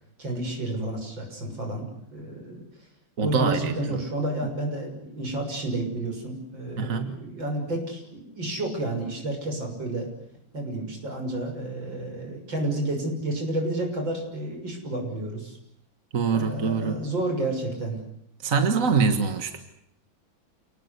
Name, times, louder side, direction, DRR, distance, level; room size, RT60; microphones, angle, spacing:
voice 1, 0.2-2.6 3.2-10.1 10.5-15.6 16.3-18.0, right 1 dB, 65° right, 3 dB, 7.3 m, -31 dB
voice 2, 3.2-4.0 4.4-4.5 6.8-7.1 16.1-17.0 18.4-19.6, right 5 dB, 45° right, 7 dB, 1.9 m, -24 dB
29.0 x 19.5 x 8.2 m, 0.77 s
omnidirectional pair, 2.2 m